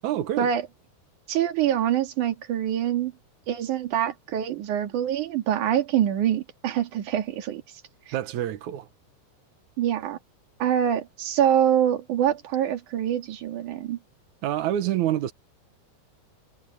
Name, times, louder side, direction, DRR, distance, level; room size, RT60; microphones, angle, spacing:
voice 1, 0.0-0.5 8.1-8.9 14.4-15.3, right 12 dB, 75° right, 1.7 m, -27 dB
voice 2, 1.3-3.1 3.5-7.6 8.1-8.2 9.8-10.2 10.6-14.0, right 10 dB, 50° right, 3.2 m, -25 dB
omnidirectional pair, 5.0 m